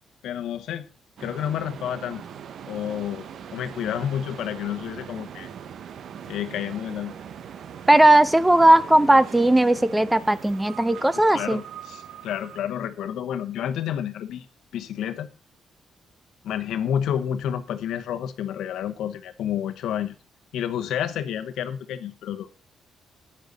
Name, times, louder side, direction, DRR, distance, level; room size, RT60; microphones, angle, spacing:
voice 1, 0.2-0.9 1.2-2.2 2.7-3.3 3.5-5.5 6.3-7.2 11.3-14.5 14.7-15.3 16.4-20.1 20.5-22.6, left 9 dB, 85° left, 9 dB, 1.0 m, -30 dB
sound 1, 1.2-12.6, right 8 dB, 65° right, 0.8 m, -41 dB
voice 2, 7.9-11.6, right 1 dB, 10° right, 16 dB, 0.6 m, -17 dB
10.0 x 9.8 x 4.0 m, 0.34 s
cardioid pair, 95°, 0 cm